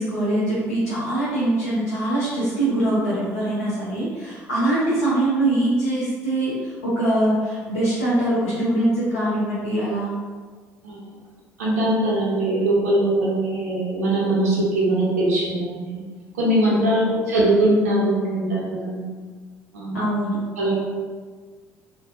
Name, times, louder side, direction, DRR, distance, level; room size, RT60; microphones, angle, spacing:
voice 1, 0.0-10.1 19.9-20.5, right 1 dB, 80° left, -9 dB, 0.6 m, -23 dB
voice 2, 11.6-16.0 16.4-19.0 19.7-19.9 20.6-20.7, right 1 dB, 85° right, -6 dB, 0.7 m, -21 dB
2.6 x 2.2 x 2.5 m, 1.5 s
hypercardioid pair, 55°, 8 cm